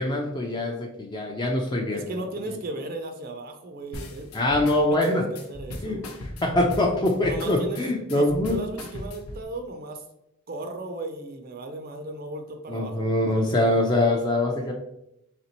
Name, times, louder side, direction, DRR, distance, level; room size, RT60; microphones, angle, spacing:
voice 1, 0.0-2.1 4.3-5.3 5.8-6.0 6.4-8.6 12.7-14.7, left 1 dB, 20° left, 1 dB, 0.4 m, -23 dB
voice 2, 1.9-4.3 4.9-6.2 7.2-10.0 10.5-13.6, right 2 dB, 40° right, 5 dB, 0.4 m, -36 dB
sound 1, 3.9-9.4, left 1 dB, 80° left, 0.6 m, -38 dB
4.2 x 3.3 x 2.9 m, 0.83 s
head